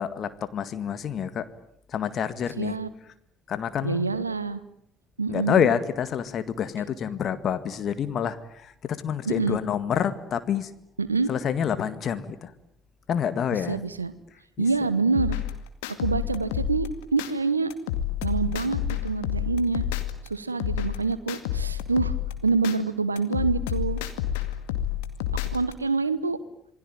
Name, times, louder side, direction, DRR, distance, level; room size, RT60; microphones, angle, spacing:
voice 1, 0.0-1.5 1.9-2.8 3.5-4.1 5.3-10.7 11.3-12.5 13.1-13.8 14.6-14.7, left 8 dB, 45° left, 12 dB, 1.9 m, -27 dB
voice 2, 2.6-2.9 3.8-4.6 5.2-5.7 9.2-9.6 11.0-11.3 13.5-14.1 14.6-15.4 16.0-17.7 18.2-19.8 20.2-22.1 22.4-24.0 25.5-26.4, right 4 dB, 85° right, 15 dB, 1.0 m, -26 dB
sound 1, 15.1-17.3 17.7-20.3 20.6-22.8 23.2-25.7, left 11 dB, 70° left, 2.2 m, -29 dB
27.5 x 21.0 x 9.1 m, 0.71 s
figure-of-eight pair, 55°, 0 cm